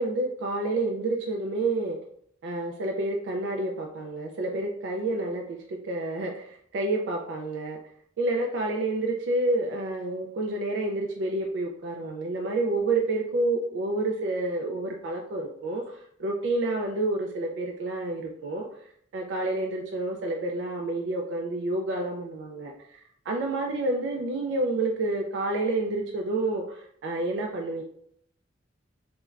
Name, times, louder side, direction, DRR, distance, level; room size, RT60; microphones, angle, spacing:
voice 1, 0.0-2.0 2.4-7.8 8.2-15.8 16.2-18.7 19.1-27.8, right 2 dB, 65° right, 1 dB, 0.3 m, -29 dB
3.1 x 2.1 x 2.3 m, 0.67 s
head